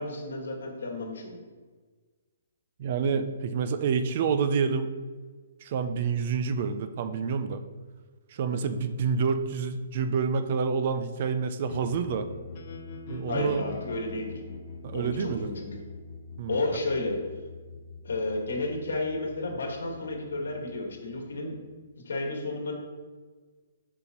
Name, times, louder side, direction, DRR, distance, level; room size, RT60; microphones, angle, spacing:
voice 1, 0.0-1.4 8.5-8.7 13.3-14.3 14.9-15.7 16.4-17.2 18.0-21.5 22.0-22.7, left 2 dB, 85° left, 1 dB, 1.7 m, -32 dB
voice 2, 2.8-4.9 5.6-7.6 8.3-12.3 13.1-13.6 14.8-15.5 16.4-16.6, right 5 dB, 35° right, 10 dB, 0.4 m, -28 dB
sound 1, 11.7-21.7, left 4 dB, 35° left, 0.6 m, -44 dB
7.9 x 5.5 x 3.0 m, 1.4 s
hypercardioid pair, 175°, 0 cm